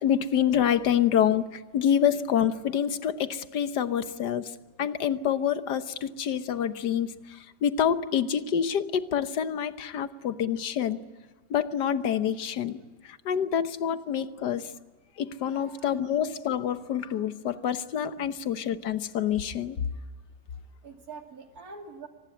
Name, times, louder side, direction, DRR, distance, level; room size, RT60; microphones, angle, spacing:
voice 1, 0.0-4.5 4.8-7.1 7.6-11.0 11.5-12.8 13.1-14.7 15.2-19.8, left 9 dB, 85° left, 12 dB, 1.6 m, -27 dB
voice 2, 15.5-16.0 18.2-18.3 20.8-22.1, right 4 dB, 60° right, 4 dB, 3.1 m, -46 dB
25.0 x 19.5 x 9.7 m, 1.3 s
omnidirectional pair, 1.8 m